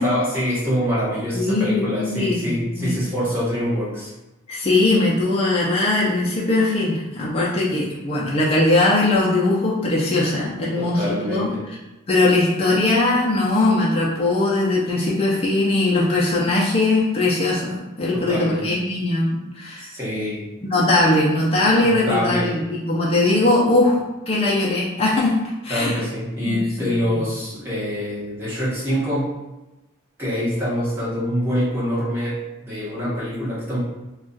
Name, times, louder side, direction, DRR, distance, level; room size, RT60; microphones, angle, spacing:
voice 1, 0.0-4.1 10.7-11.6 18.2-18.7 19.8-20.5 21.8-22.5 25.7-29.3 30.2-33.8, equal, 10° right, -9 dB, 1.0 m, -25 dB
voice 2, 1.3-3.0 4.5-11.5 12.1-19.9 20.7-25.3 25.6-26.0 26.5-27.2, left 2 dB, 25° left, -6 dB, 0.5 m, -20 dB
2.3 x 2.3 x 3.9 m, 1.0 s
head